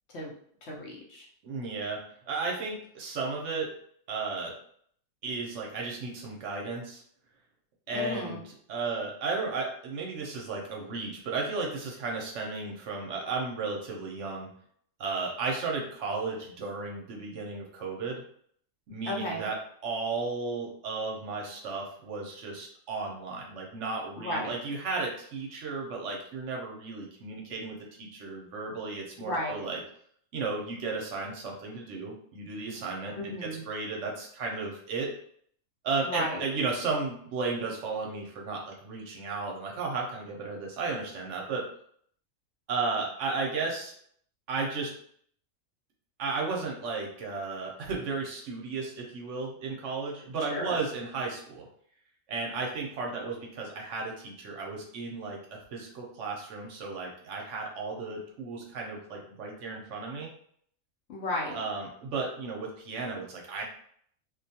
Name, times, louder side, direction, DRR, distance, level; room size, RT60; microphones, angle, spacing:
voice 1, 0.6-1.3 7.9-8.4 19.0-19.5 24.2-24.5 29.2-29.6 33.1-33.6 36.0-36.4 50.5-50.8 61.1-61.6, left 1 dB, 65° left, -3 dB, 0.8 m, -34 dB
voice 2, 1.4-2.0 2.3-3.7 4.1-4.5 5.2-7.0 7.9-8.4 8.7-14.5 15.0-18.2 18.9-19.6 19.8-29.8 30.3-35.1 35.8-41.6 42.7-43.9 44.5-44.9 46.2-51.7 52.3-60.3 61.5-63.6, right 4 dB, 65° right, 0 dB, 0.8 m, -34 dB
2.4 x 2.2 x 2.7 m, 0.63 s
omnidirectional pair, 1.4 m